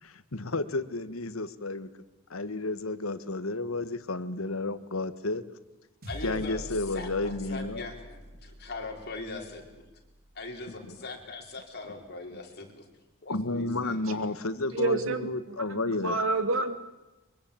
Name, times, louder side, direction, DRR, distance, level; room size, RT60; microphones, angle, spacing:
voice 1, 0.0-1.9 2.3-5.4 6.2-7.8 10.8-10.9 13.3-16.2, left 2 dB, 90° left, 13 dB, 1.5 m, -32 dB
sound 1, 6.0-10.6, equal, 50° right, 4.7 m, -45 dB
voice 2, 6.1-9.8 10.3-12.8 13.2-14.3, left 3 dB, 50° left, 2 dB, 5.1 m, -41 dB
voice 3, 14.7-16.8, right 3 dB, 75° right, 8 dB, 2.7 m, -29 dB
23.5 x 23.5 x 8.9 m, 1.0 s
head